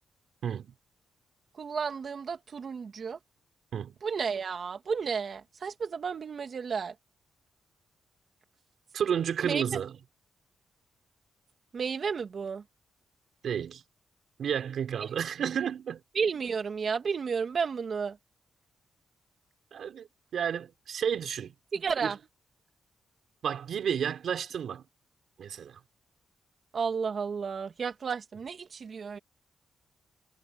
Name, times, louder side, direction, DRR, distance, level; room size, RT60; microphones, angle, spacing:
voice 1, 0.4-0.7 3.7-3.9 8.9-9.9 13.4-13.8 14.4-16.0 19.7-20.1 20.3-21.5 22.0-22.1 23.4-24.8 25.4-25.8, right 8 dB, 70° right, 3.7 m, -31 dB
voice 2, 1.6-3.2 4.0-6.9 9.4-9.8 11.7-12.6 15.0-15.1 16.1-18.2 21.7-22.2 26.7-29.2, right 6 dB, 55° right, 2.4 m, -32 dB
cardioid pair, 75°, 0 cm